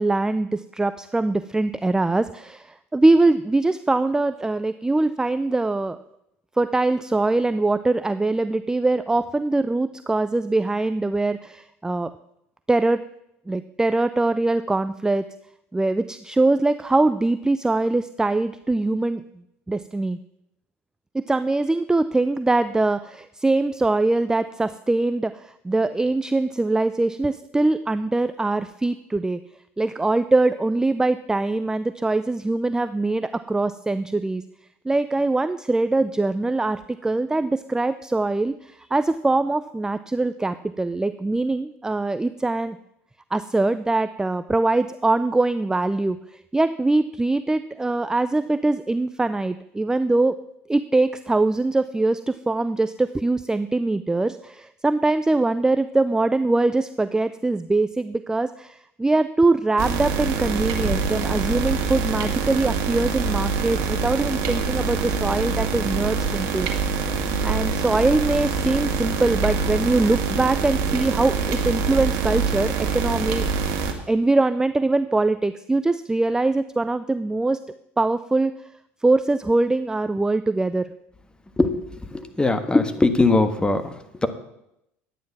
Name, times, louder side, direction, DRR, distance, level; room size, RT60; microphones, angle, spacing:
voice 1, 0.0-6.0 6.6-12.1 12.7-13.0 13.5-15.2 15.7-19.2 19.7-20.2 21.1-29.4 29.8-34.4 34.8-42.8 43.3-50.4 50.7-66.7 67.4-73.7 74.1-77.6 78.0-78.6 79.0-80.9, right 2 dB, 10° right, 12 dB, 0.4 m, -22 dB
sound 1, 59.8-73.9, right 5 dB, 60° right, 1.8 m, -25 dB
voice 2, 81.6-84.3, left 2 dB, 10° left, 9 dB, 1.4 m, -21 dB
11.0 x 9.2 x 6.0 m, 0.81 s
hypercardioid pair, 75°, 7 cm